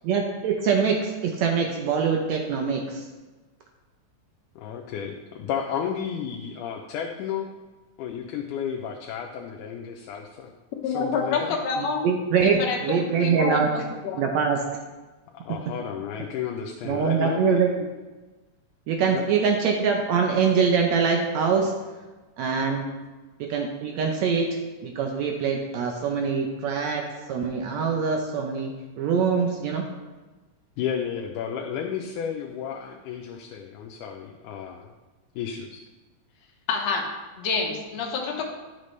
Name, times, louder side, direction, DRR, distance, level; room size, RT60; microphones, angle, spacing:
voice 1, 0.0-3.1 11.8-13.7 14.1-14.6 16.8-17.7 18.9-21.7 22.4-22.9 23.4-24.5 24.8-29.8, right 6 dB, 75° right, 2 dB, 1.8 m, -24 dB
voice 2, 4.6-7.5 8.0-10.5 10.9-11.6 15.3-17.7 19.1-19.3 30.8-34.9 35.4-35.8 36.4-36.5, left 8 dB, 85° left, 2 dB, 2.1 m, -32 dB
voice 3, 10.8-12.1 12.4-14.2 36.7-37.1 37.4-38.5, left 5 dB, 65° left, 1 dB, 2.1 m, -28 dB
11.0 x 6.7 x 3.2 m, 1.2 s
omnidirectional pair, 3.6 m